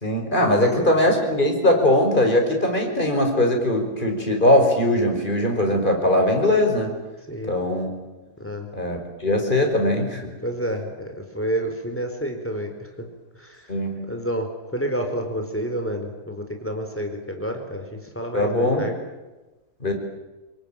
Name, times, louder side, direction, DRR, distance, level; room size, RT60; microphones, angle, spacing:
voice 1, 0.0-6.9 7.5-7.9 8.7-10.3 13.7-14.1 18.3-18.9 19.8-19.9, left 1 dB, 30° left, 3 dB, 5.2 m, -20 dB
voice 2, 10.4-12.7 14.1-14.5 14.7-17.8 18.1-18.9, right 1 dB, 5° left, 4 dB, 4.4 m, -28 dB
25.5 x 22.0 x 9.0 m, 1.1 s
omnidirectional pair, 1.8 m